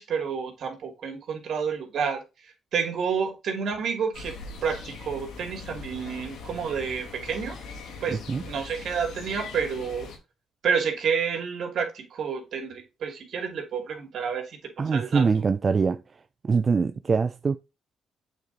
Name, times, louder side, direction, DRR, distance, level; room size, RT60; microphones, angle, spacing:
voice 1, 0.0-2.2 2.7-4.3 4.6-7.6 8.0-8.2 8.4-10.1 10.6-15.2, right 6 dB, 65° right, 2.6 m, -29 dB
sound 1, 4.1-10.2, left 4 dB, 80° left, 2.6 m, -41 dB
voice 2, 8.1-8.4 14.8-16.0 16.4-17.6, right 5 dB, 35° right, 0.5 m, -23 dB
8.1 x 4.4 x 4.0 m
cardioid pair, 90°, 0 cm